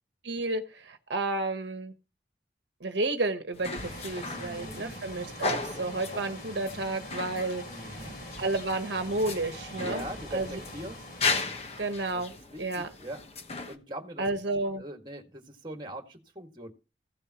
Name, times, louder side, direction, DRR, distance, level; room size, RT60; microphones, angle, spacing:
voice 1, 0.2-1.9 2.8-8.0 8.4-10.6 11.8-12.3 12.6-12.9 14.2-14.8, right 2 dB, 75° right, 1.1 m, -31 dB
sound 1, 3.5-13.8, left 3 dB, 35° left, 1.1 m, -36 dB
sound 2, 3.7-12.4, left 1 dB, 50° left, 3.1 m, -44 dB
voice 2, 4.2-4.9 7.6-8.2 9.7-11.0 12.1-12.2 12.5-13.2 13.6-14.2 14.7-16.7, right 1 dB, 25° right, 1.8 m, -41 dB
16.0 x 7.0 x 3.0 m
head